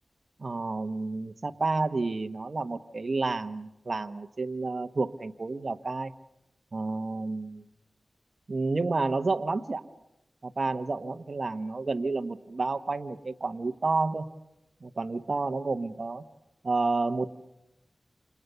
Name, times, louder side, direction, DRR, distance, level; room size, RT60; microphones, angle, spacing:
voice 1, 0.4-6.1 6.7-7.6 8.5-9.8 10.4-14.3 14.8-16.2 16.6-17.3, right 3 dB, 55° right, 7 dB, 1.0 m, -30 dB
28.5 x 27.5 x 6.8 m, 0.93 s
wide cardioid pair, 80°, 0 cm